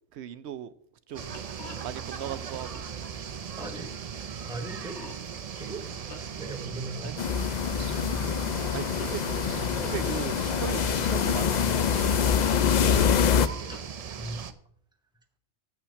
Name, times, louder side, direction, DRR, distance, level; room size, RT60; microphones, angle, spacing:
voice 1, 0.1-0.7 1.1-1.2 1.8-2.8 7.0-7.2 8.3-8.4 8.7-9.2 9.8-11.6, right 10 dB, 75° right, 0.8 m, -37 dB
sound 1, 1.1-14.4, left 3 dB, 80° left, 1.8 m, -52 dB
sound 2, 1.1-14.5, right 7 dB, 45° right, 0.5 m, -38 dB
voice 2, 3.6-3.9 4.5-5.0 5.6-5.8 6.2-7.2 7.9-8.1 14.2-14.4, right 2 dB, 5° right, 0.9 m, -39 dB
sound 3, 7.2-13.5, left 7 dB, 60° left, 0.5 m, -25 dB
7.9 x 5.7 x 7.6 m
omnidirectional pair, 1.2 m